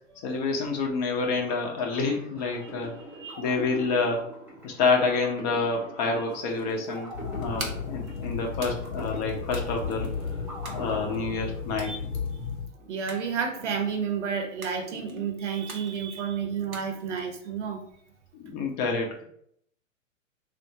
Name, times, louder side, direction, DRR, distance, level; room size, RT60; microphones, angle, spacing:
voice 1, 0.2-2.9 3.4-4.3 4.6-10.1 10.7-11.9 18.4-19.2, left 4 dB, 30° left, 1 dB, 0.7 m, -28 dB
sound 1, 1.2-12.0, right 1 dB, 5° right, 0.4 m, -43 dB
sound 2, 6.1-17.6, right 2 dB, 90° right, 0.8 m, -46 dB
sound 3, 7.1-12.7, left 5 dB, 90° left, 0.9 m, -34 dB
voice 2, 12.9-17.8, right 6 dB, 60° right, 4 dB, 0.8 m, -31 dB
3.4 x 2.6 x 2.7 m, 0.68 s
figure-of-eight pair, 105°, 40 cm